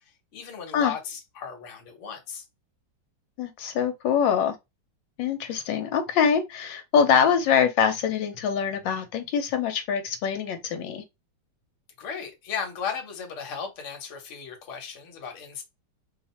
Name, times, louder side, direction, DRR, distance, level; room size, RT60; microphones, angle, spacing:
voice 1, 0.3-2.4 12.0-15.6, left 6 dB, 50° left, 1.1 m, -35 dB
voice 2, 3.4-4.5 5.2-11.0, left 7 dB, 80° left, 1.3 m, -24 dB
2.9 x 2.4 x 4.1 m
omnidirectional pair, 2.0 m